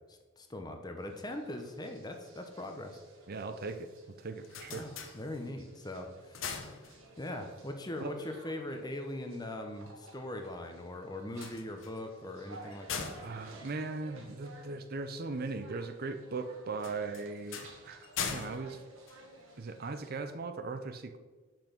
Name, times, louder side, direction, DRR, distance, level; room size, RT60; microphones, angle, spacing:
voice 1, 0.1-3.0 4.7-6.7 7.2-13.1, left 1 dB, 20° left, 5 dB, 0.9 m, -41 dB
sound 1, 1.0-20.1, right 2 dB, 90° right, 1.8 m, -56 dB
voice 2, 3.3-3.9 4.2-4.9 8.0-8.1 13.2-18.8 19.6-21.2, right 3 dB, 50° right, 9 dB, 0.5 m, -39 dB
sound 2, 4.2-5.7 6.1-7.4 11.2-14.7 16.8-19.8, left 6 dB, 70° left, 0.9 m, -42 dB
6.9 x 6.0 x 5.2 m, 1.3 s
head